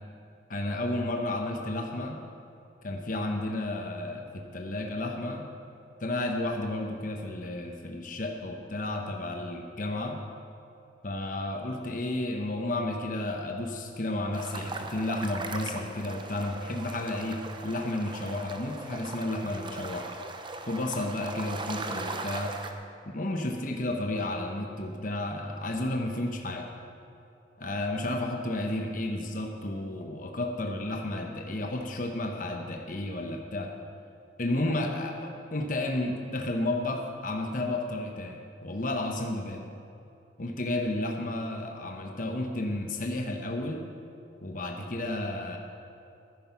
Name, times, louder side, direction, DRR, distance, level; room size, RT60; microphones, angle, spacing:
voice 1, 0.5-2.2 2.8-5.5 6.0-10.2 11.0-20.1 20.7-22.5 23.1-26.7 27.6-33.7 34.4-39.6 40.4-43.8 44.4-45.6, left 1 dB, 45° left, 2 dB, 1.0 m, -32 dB
sound 1, 14.3-22.7, right 3 dB, 25° right, 0.8 m, -39 dB
13.5 x 10.5 x 5.7 m, 2.7 s
head